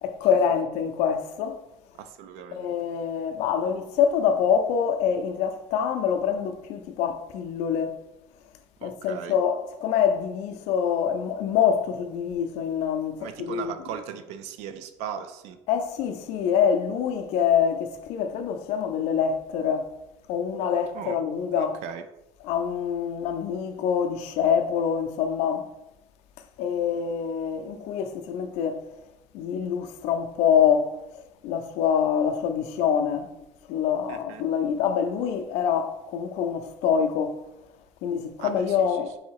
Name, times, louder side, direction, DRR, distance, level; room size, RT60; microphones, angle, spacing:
voice 1, 0.0-1.6 2.5-8.0 8.8-13.7 15.7-19.9 20.3-21.8 22.4-25.7 26.6-28.8 29.3-33.3 33.7-37.4 38.0-39.2, left 7 dB, 70° left, 0.5 m, -25 dB
voice 2, 1.9-2.7 8.8-9.4 13.2-15.6 20.9-21.2 21.5-22.1 34.1-34.4 38.4-39.0, right 8 dB, 75° right, 0.4 m, -38 dB
3.9 x 2.7 x 4.6 m
cardioid pair, 175°, 12 cm